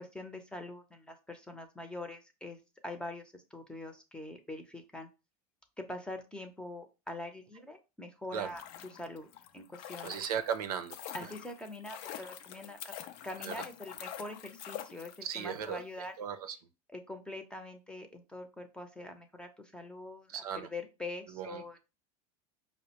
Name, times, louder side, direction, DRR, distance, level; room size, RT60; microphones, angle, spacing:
voice 1, 0.0-5.1 5.8-9.3 9.5-10.2 11.1-12.9 13.2-16.1 16.9-21.8, left 2 dB, 5° left, 6 dB, 0.7 m, -44 dB
sound 1, 8.3-15.5 15.8-15.9, left 11 dB, 60° left, 0.5 m, -46 dB
voice 2, 10.0-11.0 13.4-13.5 15.2-15.8 16.2-16.6 20.3-20.7 21.4-21.8, right 8 dB, 85° right, 9 dB, 0.6 m, -36 dB
4.9 x 2.1 x 2.9 m, 0.29 s
hypercardioid pair, 100°, 19 cm